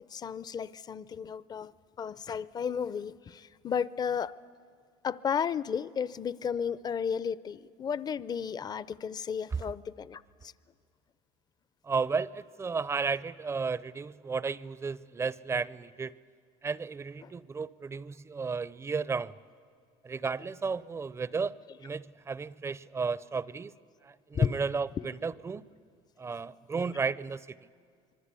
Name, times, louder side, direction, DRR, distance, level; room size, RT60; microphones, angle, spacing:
voice 1, 0.1-1.7 2.0-4.3 5.0-10.5 17.2-17.3 24.3-24.6, left 7 dB, 30° left, 0.6 m, -33 dB
voice 2, 11.8-16.1 16.6-19.4 20.0-23.7 24.0-25.6 26.2-27.5, right 5 dB, 20° right, 0.5 m, -33 dB
25.5 x 23.0 x 8.3 m
supercardioid pair, 110°, 14 cm